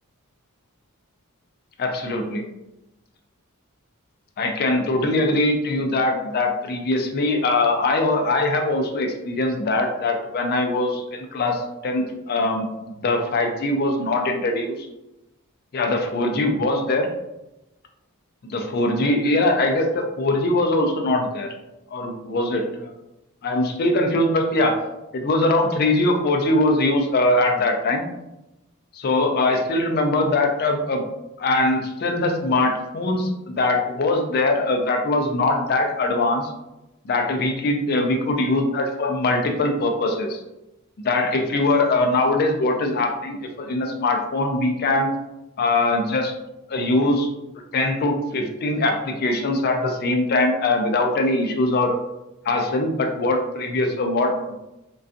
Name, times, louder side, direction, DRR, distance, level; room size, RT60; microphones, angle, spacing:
voice 1, 1.8-2.4 4.4-14.9 15.7-17.1 18.4-21.5 21.9-22.9 23.4-24.8 25.1-28.1 28.9-31.0 31.4-36.5 37.0-40.4 41.0-45.1 45.6-46.3 46.7-47.3 47.7-52.0 52.4-54.5, left 2 dB, 45° left, 3 dB, 0.4 m, -22 dB
2.5 x 2.3 x 2.4 m, 0.95 s
head